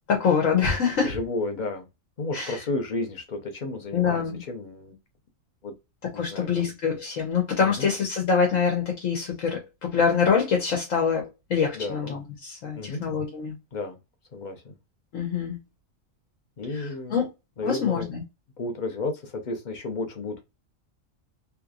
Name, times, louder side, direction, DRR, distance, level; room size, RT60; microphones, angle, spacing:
voice 1, 0.1-1.1 2.3-2.6 3.9-4.4 6.2-13.5 15.1-15.6 16.7-17.3 17.6-18.2, left 6 dB, 75° left, 1.4 m, -25 dB
voice 2, 1.0-1.9 2.2-5.0 5.6-5.7 6.1-6.7 7.6-7.9 11.7-12.1 12.7-13.0 13.7-14.0 14.3-14.8 16.6-17.2 17.6-18.1 18.6-20.4, left 2 dB, 40° left, 0.8 m, -32 dB
3.3 x 3.0 x 2.4 m
omnidirectional pair, 1.4 m